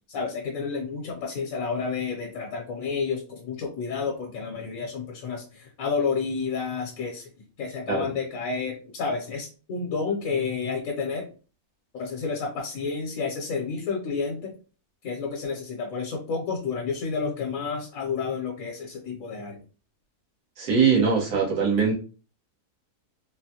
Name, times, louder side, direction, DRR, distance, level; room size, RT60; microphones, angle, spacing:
voice 1, 0.1-7.3 7.6-11.2 11.9-14.5 15.0-19.6, left 5 dB, 65° left, -1 dB, 1.1 m, -30 dB
voice 2, 20.6-21.9, right 6 dB, 85° right, -4 dB, 1.7 m, -22 dB
3.9 x 2.1 x 2.8 m, 0.36 s
omnidirectional pair, 1.6 m